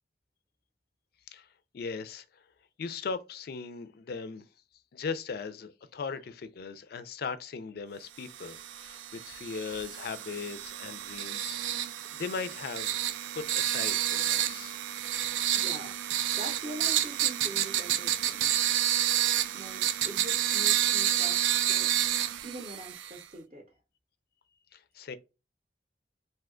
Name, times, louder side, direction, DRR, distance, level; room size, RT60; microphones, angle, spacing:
voice 1, 1.7-2.5 2.8-4.5 4.9-11.6 12.1-13.0 13.3-14.8 24.7-25.2, left 5 dB, 55° left, 0.4 m, -38 dB
sound 1, 8.3-23.2, right 12 dB, 85° right, 0.3 m, -29 dB
voice 2, 15.5-18.5 19.5-21.9 22.4-23.6, right 1 dB, 35° right, 0.6 m, -43 dB
2.7 x 2.2 x 3.6 m
head